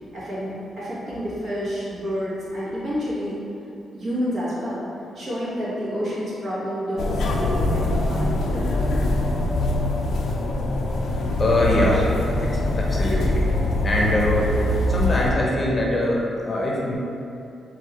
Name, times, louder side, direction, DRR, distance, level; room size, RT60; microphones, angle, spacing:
voice 1, 0.1-3.4 3.9-4.8 5.1-9.1, equal, 60° right, -9 dB, 1.4 m, -29 dB
sound 1, 7.0-15.3, left 1 dB, 70° left, 0.4 m, -23 dB
voice 2, 11.4-12.1 12.4-12.5 12.7-13.4 13.8-14.4 14.9-17.0, left 1 dB, 35° left, -4 dB, 0.7 m, -22 dB
4.8 x 2.7 x 3.0 m, 2.6 s
cardioid pair, 95°, 0 cm